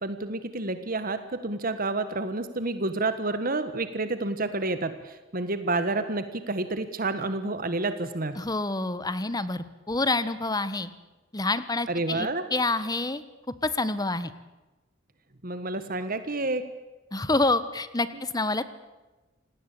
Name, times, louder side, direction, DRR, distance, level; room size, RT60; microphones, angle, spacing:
voice 1, 0.0-8.4 11.9-12.4 15.4-16.6, right 2 dB, 45° right, 11 dB, 1.5 m, -29 dB
voice 2, 8.4-10.9 11.3-13.2 13.6-14.3 17.1-18.6, left 2 dB, 20° left, 14 dB, 1.3 m, -27 dB
27.5 x 19.0 x 8.5 m, 1.1 s
head